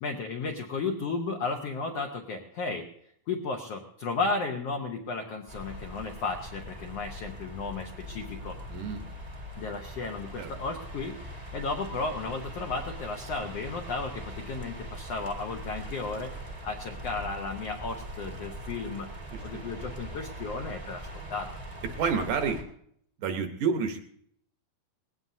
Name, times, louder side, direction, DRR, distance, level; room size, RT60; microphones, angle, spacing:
voice 1, 0.0-2.9 3.3-8.6 9.6-16.3 16.6-19.1 19.4-21.5, left 3 dB, 75° left, 3 dB, 1.4 m, -34 dB
sound 1, 5.5-22.6, equal, 30° right, 0.6 m, -41 dB
voice 2, 8.7-9.1 10.4-10.5 19.3-19.6 22.0-22.6 23.2-24.0, right 5 dB, 70° right, 6 dB, 2.1 m, -29 dB
20.5 x 17.0 x 2.7 m, 0.66 s
omnidirectional pair, 4.2 m